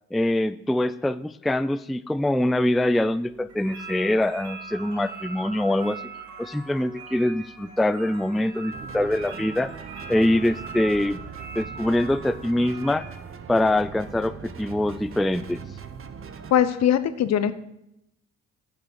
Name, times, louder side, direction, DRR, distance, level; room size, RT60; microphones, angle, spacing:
voice 1, 0.1-6.0 6.4-9.7 10.1-11.2 11.6-13.0 13.5-15.6, left 1 dB, ahead, 14 dB, 0.3 m, -24 dB
sound 1, 2.5-13.2, right 4 dB, 65° right, 3.0 m, -41 dB
sound 2, 8.7-16.5, right 6 dB, 45° right, 1.0 m, -40 dB
voice 2, 16.5-17.5, left 10 dB, 60° left, 13 dB, 0.8 m, -21 dB
6.9 x 6.8 x 7.8 m, 0.82 s
supercardioid pair, 55°, 30 cm